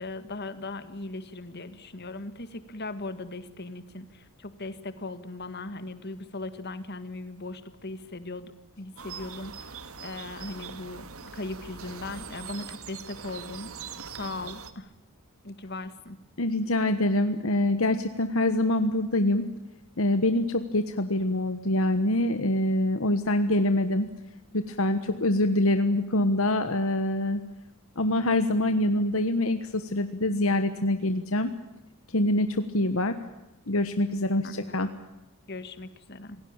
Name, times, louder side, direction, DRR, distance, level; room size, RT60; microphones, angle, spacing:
voice 1, 0.0-8.5 8.8-14.9 15.4-16.2 34.4-34.8 35.5-36.4, left 2 dB, 45° left, 12 dB, 1.9 m, -38 dB
sound 1, 9.0-14.7, right 6 dB, 70° right, 1.9 m, -42 dB
voice 2, 16.4-19.4 20.0-24.1 24.5-27.4 28.0-31.5 32.1-33.1 33.7-34.9, left 1 dB, 65° left, 9 dB, 1.3 m, -25 dB
27.0 x 18.0 x 8.8 m, 1.0 s
head